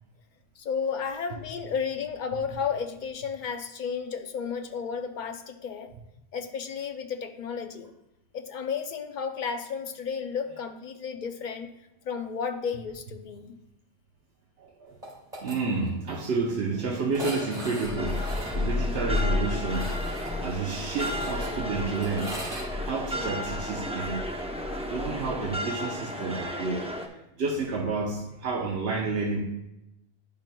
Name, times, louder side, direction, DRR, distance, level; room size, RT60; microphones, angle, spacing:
voice 1, 0.6-5.9 6.3-7.9 8.3-11.7 12.0-13.6, left 6 dB, 55° left, 7 dB, 0.7 m, -33 dB
voice 2, 14.6-15.0 15.4-18.2 18.5-19.9 20.4-22.3 22.8-24.3 24.9-26.8 27.4-29.5, right 4 dB, 80° right, -2 dB, 1.1 m, -30 dB
sound 1, 15.0-15.6 15.9-16.0 16.2-16.3 17.1-22.7, equal, 40° right, 2.2 m, -40 dB
Thunder / Rain, 17.8-25.5, left 3 dB, 20° left, 1.2 m, -33 dB
sound 2, 18.0-27.1, equal, 10° right, 0.5 m, -34 dB
10.5 x 5.5 x 2.2 m, 0.89 s
omnidirectional pair, 1.1 m